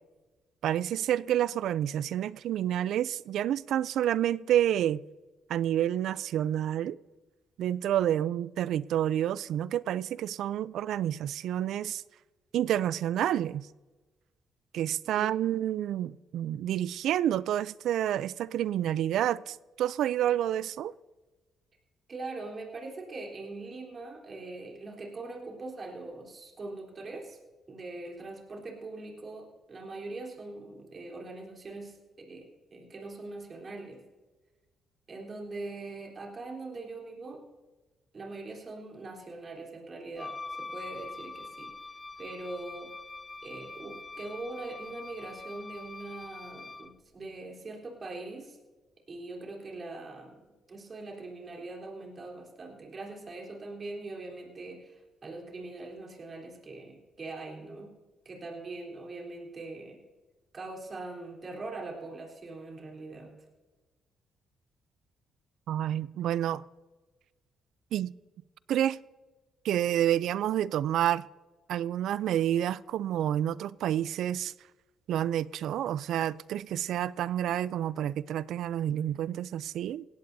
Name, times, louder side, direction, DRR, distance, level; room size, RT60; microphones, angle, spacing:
voice 1, 0.6-5.0 5.5-7.0 7.6-12.0 12.5-13.7 14.7-20.9 65.7-66.6 67.9-68.1 68.7-69.0 69.6-71.3 71.7-74.5 75.1-80.1, right 11 dB, 75° right, 0.3 m, -29 dB
voice 2, 22.1-27.4 27.7-34.0 35.1-37.4 38.1-41.7 42.2-42.9 43.4-48.6 49.1-50.4 50.7-57.9 58.3-60.0 60.5-63.3, right 2 dB, 40° right, 3.7 m, -42 dB
Wind instrument woodwind instrument, 40.2-47.0, left 3 dB, 25° left, 0.5 m, -44 dB
18.5 x 16.5 x 2.7 m
cardioid pair, 90°, 0 cm